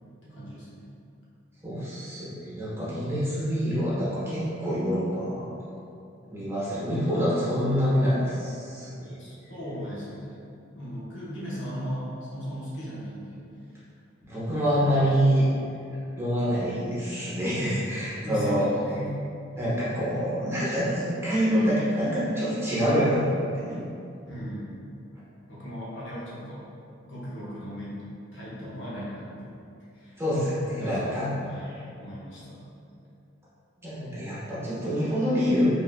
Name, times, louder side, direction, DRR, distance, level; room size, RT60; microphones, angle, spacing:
voice 1, 0.2-0.8 9.2-10.4 10.7-13.4 14.3-15.1 18.2-19.2 24.3-24.8 25.5-26.7 27.1-28.0 28.3-29.6 29.9-30.2 30.8-31.1 31.5-31.7 32.0-32.6, equal, 65° left, -8 dB, 1.1 m, -37 dB
voice 2, 1.6-5.6 6.3-9.2 14.3-15.5 16.2-18.7 19.6-23.2 23.5-23.8 30.2-31.3 31.6-31.8 33.8-35.6, equal, 15° right, -11 dB, 1.1 m, -26 dB
4.8 x 2.8 x 2.3 m, 2.6 s
head